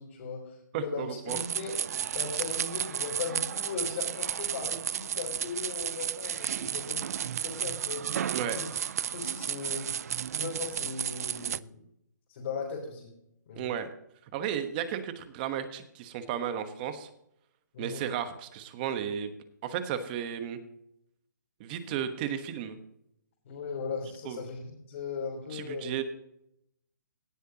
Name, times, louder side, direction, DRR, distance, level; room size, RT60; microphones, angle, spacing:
voice 1, 0.0-1.7 2.1-8.7 9.1-9.9 10.4-11.8 12.3-13.1 13.5-13.7 17.7-18.1 23.4-26.0, left 5 dB, 45° left, -4 dB, 3.4 m, -38 dB
voice 2, 0.7-1.4 8.3-8.6 13.5-13.9 14.3-17.1 17.8-19.3 19.6-20.6 21.6-22.8 24.2-24.4 25.5-26.0, right 9 dB, 30° right, 9 dB, 1.2 m, -34 dB
sound 1, 1.3-11.6, right 9 dB, 55° right, 0.4 m, -33 dB
17.5 x 7.9 x 2.9 m, 0.77 s
hypercardioid pair, 160°, 10 cm